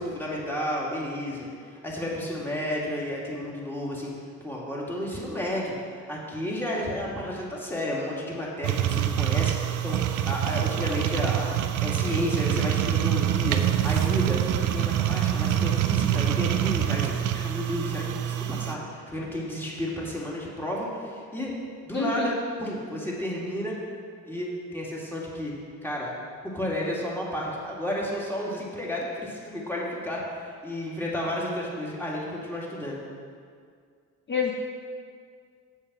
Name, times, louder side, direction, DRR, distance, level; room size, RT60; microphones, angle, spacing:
voice 1, 0.0-4.1 4.4-21.5 21.8-23.7 24.2-25.5 25.8-26.1 26.4-33.0, left 1 dB, 5° left, -5 dB, 2.6 m, -32 dB
sound 1, 8.6-18.7, right 11 dB, 90° right, 0.6 m, -25 dB
voice 2, 21.9-22.3 34.3-34.5, left 5 dB, 35° left, 0 dB, 0.9 m, -27 dB
7.5 x 7.3 x 6.3 m, 2.1 s
cardioid pair, 90°, 30 cm